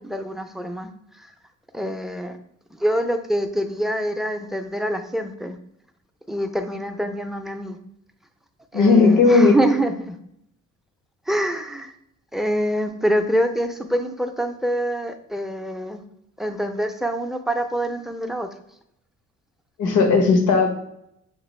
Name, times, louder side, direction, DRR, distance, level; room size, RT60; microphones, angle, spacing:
voice 1, 0.0-1.3 1.7-2.4 2.7-5.6 6.3-7.8 8.7-10.2 11.3-11.9 12.3-16.0 16.4-18.5, right 1 dB, ahead, 7 dB, 0.4 m, -25 dB
voice 2, 8.7-9.5 19.8-20.7, left 4 dB, 90° left, 4 dB, 0.9 m, -15 dB
6.7 x 2.4 x 3.1 m, 0.76 s
cardioid pair, 90°, 30 cm